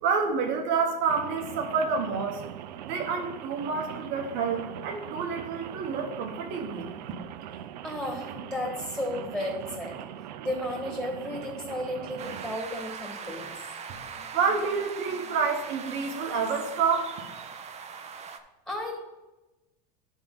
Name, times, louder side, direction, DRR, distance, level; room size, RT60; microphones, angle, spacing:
voice 1, 0.0-2.4 2.8-6.9 13.9-17.2, right 5 dB, 60° right, 2 dB, 1.2 m, -28 dB
Rain, 1.1-12.6, right 10 dB, 90° right, 0.5 m, -41 dB
voice 2, 7.8-10.0 10.4-13.5 18.7-18.9, left 1 dB, 5° left, -1 dB, 2.9 m, -33 dB
sound 1, 12.2-18.4, right 6 dB, 30° right, 0.8 m, -41 dB
9.8 x 3.6 x 5.4 m, 1.0 s
supercardioid pair, 105°, 21 cm